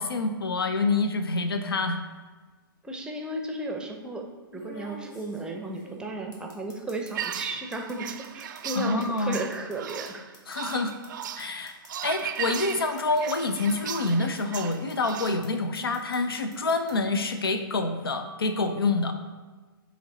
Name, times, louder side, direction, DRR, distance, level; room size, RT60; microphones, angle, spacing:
voice 1, 0.0-2.0 8.7-9.5 10.5-10.9 11.4-11.7 12.0-19.1, left 3 dB, 80° left, 7 dB, 0.6 m, -27 dB
sound 1, 1.3-1.7 2.9-3.0 4.5-7.5 7.7-14.1 14.4-15.5 15.7-16.9, left 1 dB, 50° left, 1.7 m, -49 dB
voice 2, 2.8-4.2 4.5-10.2, right 2 dB, 5° right, 2 dB, 0.6 m, -34 dB
sound 2, 7.1-15.4, right 9 dB, 55° right, 0.4 m, -37 dB
8.6 x 3.2 x 4.0 m, 1.4 s
figure-of-eight pair, 115°, 12 cm